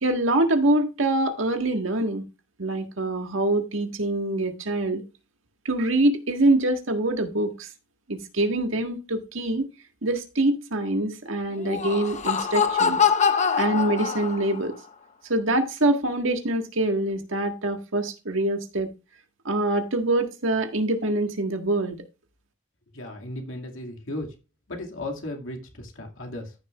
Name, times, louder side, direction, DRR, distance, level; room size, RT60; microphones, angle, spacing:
voice 1, 0.0-2.2 2.6-5.0 5.6-7.7 8.1-9.7 10.0-13.0 13.5-14.7 15.3-18.9 19.4-22.0, right 2 dB, 80° right, 1.7 m, -24 dB
Laughter, 11.5-14.7, left 6 dB, 35° left, 0.9 m, -24 dB
voice 2, 22.9-24.3 24.7-26.5, left 1 dB, 80° left, 2.3 m, -35 dB
14.0 x 6.7 x 2.4 m
head